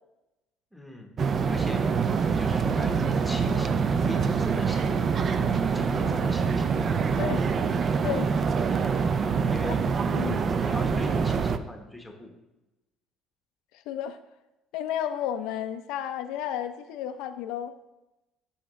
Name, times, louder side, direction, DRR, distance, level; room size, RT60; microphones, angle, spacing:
voice 1, 0.7-1.1 1.5-1.9 2.4-5.0 5.7-7.1 9.4-9.7 10.1-12.3, left 1 dB, ahead, 2 dB, 1.0 m, -40 dB
sound 1, 1.2-11.6, right 5 dB, 25° right, 0.4 m, -25 dB
voice 2, 7.2-7.5 8.0-8.5 10.1-10.4 13.9-14.2 14.7-17.7, left 10 dB, 80° left, 8 dB, 0.5 m, -32 dB
14.0 x 5.8 x 3.1 m, 1.0 s
cardioid pair, 180°, 0 cm